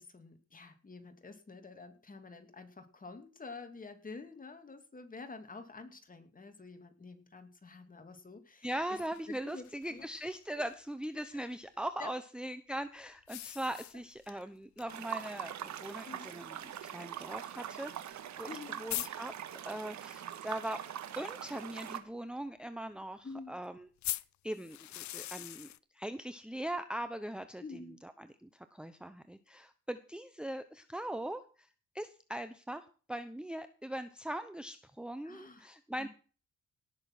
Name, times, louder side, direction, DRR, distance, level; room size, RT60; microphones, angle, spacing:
voice 1, 0.0-9.0 9.3-10.1 10.6-10.7 11.3-11.4 12.0-12.1 14.3-14.5 16.1-16.3 18.4-18.9 23.2-23.5 27.6-28.0 35.2-35.7 36.0-36.1, left 4 dB, 25° left, 7 dB, 2.7 m, -49 dB
sound 1, 8.6-10.7 13.3-14.4 14.8-14.9 15.2-15.3 16.3-16.4 18.1-18.2 18.5-18.6 18.9-19.1 24.0-25.8, left 14 dB, 65° left, 0.7 m, -41 dB
voice 2, 8.6-19.3 19.6-20.8 21.2-23.9 24.4-25.7 25.9-27.6 28.0-36.1, right 1 dB, 5° right, 10 dB, 0.9 m, -40 dB
sound 2, 14.9-22.0, right 10 dB, 70° right, 1.6 m, -43 dB
18.0 x 7.0 x 6.1 m, 0.38 s
cardioid pair, 90°, 30 cm